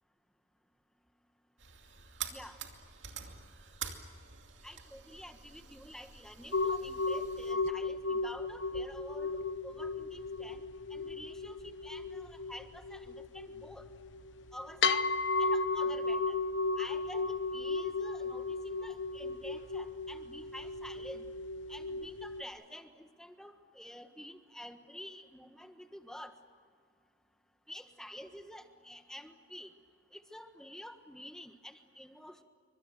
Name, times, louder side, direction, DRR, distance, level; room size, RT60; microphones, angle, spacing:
sound 1, 1.6-7.5, right 8 dB, 90° right, 2.5 m, -47 dB
voice 1, 4.6-10.6 10.9-13.9 14.5-15.1 15.4-16.4 16.8-21.3 21.7-26.3 27.7-29.7 30.1-32.4, equal, 5° left, 7 dB, 1.4 m, -49 dB
sound 2, 6.5-22.4, left 3 dB, 90° left, 0.9 m, -35 dB
28.5 x 25.0 x 7.8 m, 2.1 s
head